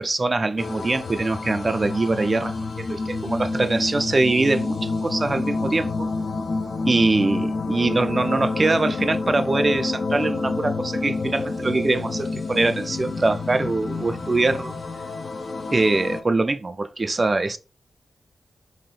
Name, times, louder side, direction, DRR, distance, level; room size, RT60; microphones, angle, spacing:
voice 1, 0.0-6.1 6.9-14.8 15.7-17.6, right 3 dB, 35° right, 0.3 m, -23 dB
sound 1, 0.6-16.2, left 3 dB, 50° left, 0.5 m, -28 dB
3.0 x 2.8 x 4.0 m
wide cardioid pair, 90°, 0 cm